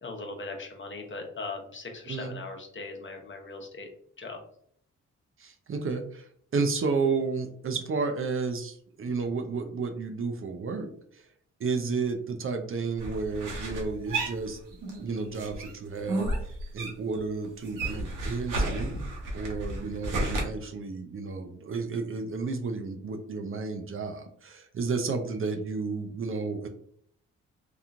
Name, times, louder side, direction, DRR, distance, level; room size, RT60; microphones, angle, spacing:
voice 1, 0.0-3.9 4.2-4.4, left 3 dB, 35° left, 3 dB, 0.8 m, -39 dB
voice 2, 5.4-11.2 11.6-14.6 15.0-16.3 16.7-19.0 19.3-26.7, right 4 dB, 40° right, 5 dB, 0.5 m, -32 dB
sound 1, 13.0-15.1 15.3-17.2 17.4-20.4, right 2 dB, 75° right, 0.9 m, -32 dB
2.9 x 2.3 x 2.5 m, 0.63 s
supercardioid pair, 50°, 32 cm